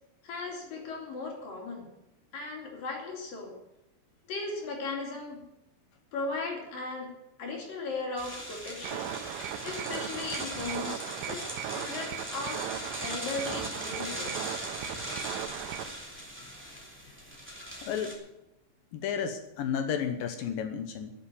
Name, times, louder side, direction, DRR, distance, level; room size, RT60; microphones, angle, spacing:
voice 1, 0.2-1.9 2.3-3.5 4.3-5.4 6.1-9.1 9.6-12.7 13.0-14.5, left 3 dB, 55° left, 1 dB, 4.0 m, -37 dB
sound 1, 8.2-18.1, equal, 5° right, 1.5 m, -40 dB
sound 2, 8.8-15.9, right 11 dB, 90° right, 3.0 m, -38 dB
voice 2, 17.8-18.1 18.9-21.1, left 7 dB, 75° left, 7 dB, 2.2 m, -32 dB
12.5 x 7.2 x 9.9 m, 0.91 s
omnidirectional pair, 5.1 m